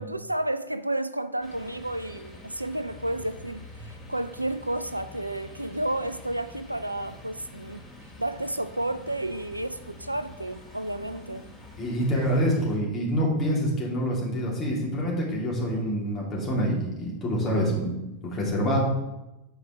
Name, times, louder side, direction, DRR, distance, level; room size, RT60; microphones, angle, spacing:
voice 1, 0.0-7.8 8.2-11.5, right 1 dB, 85° right, 0.3 m, -31 dB
sound 1, 1.4-12.8, left 2 dB, 10° left, 2.9 m, -46 dB
voice 2, 11.8-17.9 18.2-18.8, equal, 25° left, 2.7 m, -26 dB
7.8 x 4.9 x 4.7 m
figure-of-eight pair, 90°, 0 cm